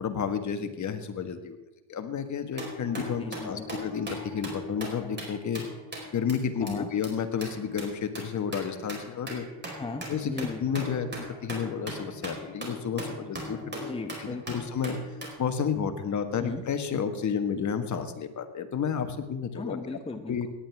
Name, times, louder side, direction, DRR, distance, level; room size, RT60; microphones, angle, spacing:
voice 1, 0.0-1.6 1.9-5.7 6.1-9.5 10.1-10.3 10.6-13.9 14.2-15.0 15.4-19.8 20.3-20.5, left 7 dB, 40° left, 8 dB, 1.6 m, -31 dB
sound 1, 2.6-6.3 6.7-6.8 7.0-7.1 7.4-15.3, equal, 25° right, 4.6 m, -40 dB
voice 2, 3.2-3.7 6.6-6.9 9.7-10.6 13.7-14.6 16.4-16.6 19.5-20.5, left 3 dB, 15° left, 6 dB, 1.0 m, -37 dB
18.0 x 11.0 x 3.5 m, 0.99 s
supercardioid pair, 90°, 45 cm